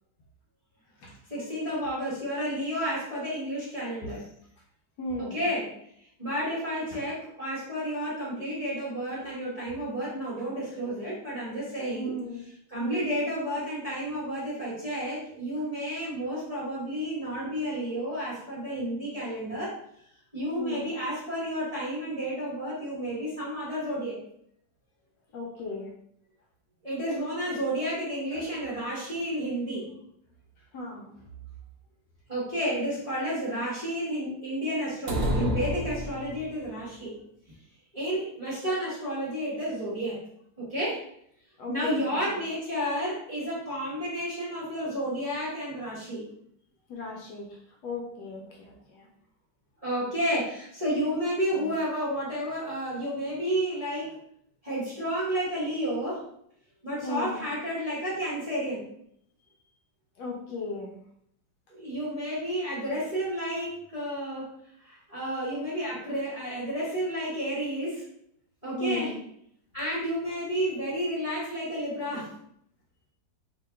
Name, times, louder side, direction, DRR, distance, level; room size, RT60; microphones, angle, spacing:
voice 1, 1.3-4.2 5.2-5.7 6.2-12.2 12.7-19.8 20.3-24.2 26.8-30.0 32.3-37.2 37.9-40.2 40.6-41.0 41.7-46.3 49.8-54.2 54.6-56.2 56.8-58.9 61.7-64.5 64.8-68.1 68.6-69.1 69.7-72.3, equal, 25° right, -9 dB, 1.0 m, -31 dB
voice 2, 5.0-5.4 6.9-7.0 11.9-12.4 12.8-13.2 20.6-20.9 25.3-25.9 28.3-28.8 30.7-31.2 41.6-42.4 46.9-49.1 51.6-51.7 57.0-57.5 60.2-61.0 68.7-69.2, left 1 dB, 70° left, 0 dB, 1.1 m, -37 dB
sound 1, 35.1-36.7, left 1 dB, 70° right, 0.8 m, -29 dB
2.9 x 2.8 x 3.3 m, 0.69 s
omnidirectional pair, 2.0 m